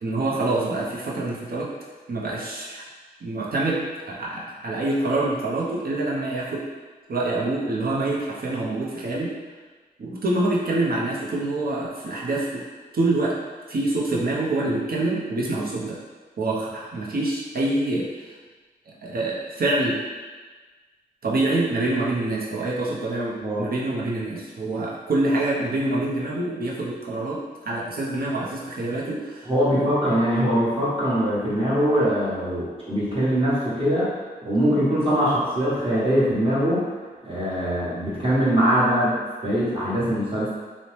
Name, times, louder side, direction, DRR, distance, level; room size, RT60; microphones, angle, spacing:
voice 1, 0.0-1.7 2.1-2.8 3.2-6.7 7.1-9.3 10.0-12.6 12.9-13.4 13.7-16.0 16.4-18.3 18.9-20.0 21.2-29.8, right 2 dB, 65° right, -4 dB, 0.6 m, -26 dB
voice 2, 29.5-34.1 34.4-36.9 37.2-39.2 39.4-40.5, equal, 35° right, -9 dB, 1.2 m, -22 dB
2.7 x 2.0 x 3.1 m, 1.4 s
cardioid pair, 55°, 17 cm